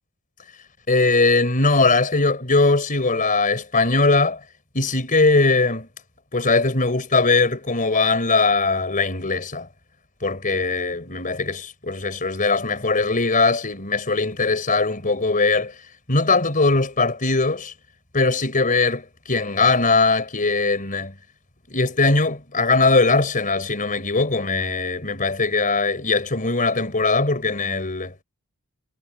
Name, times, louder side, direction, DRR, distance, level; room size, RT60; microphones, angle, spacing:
voice 1, 0.9-4.4 4.7-5.9 6.3-9.7 10.2-15.7 16.1-17.7 18.1-21.1 21.7-28.1, left 3 dB, 40° left, 4.6 m, -20 dB
head